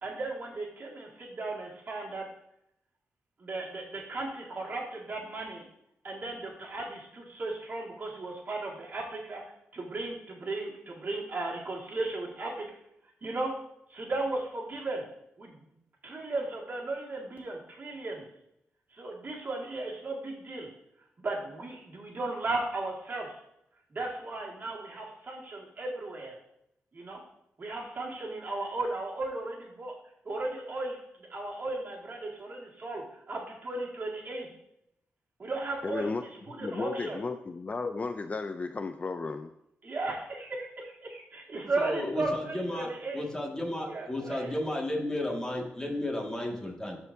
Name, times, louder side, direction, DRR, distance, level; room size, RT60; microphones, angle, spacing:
voice 1, 0.0-2.3 3.4-5.7 6.0-9.4 9.7-12.8 13.2-13.5 13.9-15.1 15.4-15.7 16.0-18.3 18.9-20.7 21.2-23.4 23.9-26.4 26.9-27.2 27.6-29.9 30.3-34.5 35.4-37.2 39.8-43.2 43.9-44.5, right 2 dB, 45° right, -2 dB, 2.0 m, -36 dB
voice 2, 35.8-36.2 36.6-39.5, left 3 dB, 35° left, 8 dB, 0.4 m, -34 dB
voice 3, 41.6-47.0, left 1 dB, 15° left, -1 dB, 1.8 m, -33 dB
13.0 x 4.4 x 2.7 m, 0.80 s
cardioid pair, 75°, 4 cm